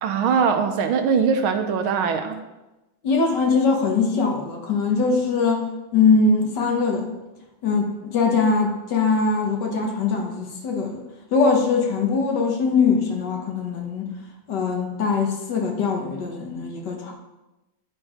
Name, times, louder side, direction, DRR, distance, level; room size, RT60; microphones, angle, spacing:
voice 1, 0.0-2.4, right 6 dB, 80° right, 7 dB, 1.6 m, -21 dB
voice 2, 3.0-5.6 5.9-7.1 7.6-11.0 11.3-14.1 14.5-17.1, left 4 dB, 60° left, 1 dB, 1.7 m, -22 dB
10.0 x 4.5 x 4.9 m, 1.0 s
omnidirectional pair, 2.2 m